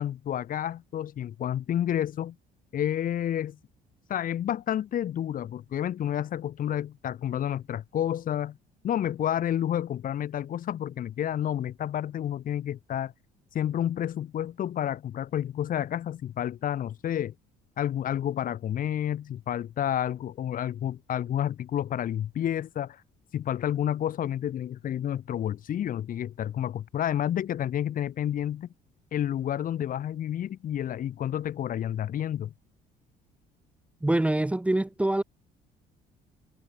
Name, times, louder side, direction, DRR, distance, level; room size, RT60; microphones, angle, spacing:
voice 1, 0.0-2.4 2.7-3.6 4.1-8.6 8.8-13.1 13.5-17.3 17.8-23.0 23.3-28.7 29.1-32.5, left 10 dB, 55° left, 1.9 m, -30 dB
voice 2, 34.0-35.2, right 1 dB, 5° right, 0.9 m, -25 dB
cardioid pair, 110°, 17 cm